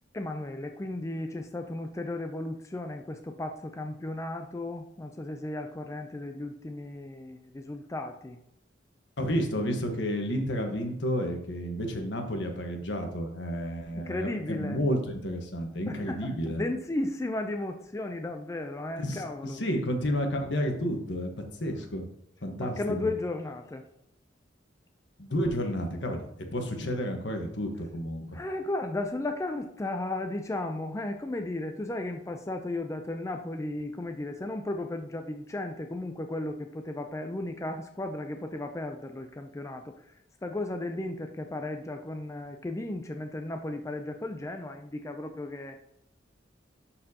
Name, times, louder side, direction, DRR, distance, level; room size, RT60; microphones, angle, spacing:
voice 1, 0.1-8.4 13.9-14.8 15.9-19.6 22.6-23.8 28.3-40.1 40.4-45.8, left 2 dB, 15° left, 5 dB, 0.4 m, -35 dB
voice 2, 9.2-16.6 19.0-22.1 22.4-22.8 25.2-28.4, equal, 70° left, 4 dB, 1.3 m, -31 dB
11.5 x 4.4 x 2.8 m, 0.77 s
head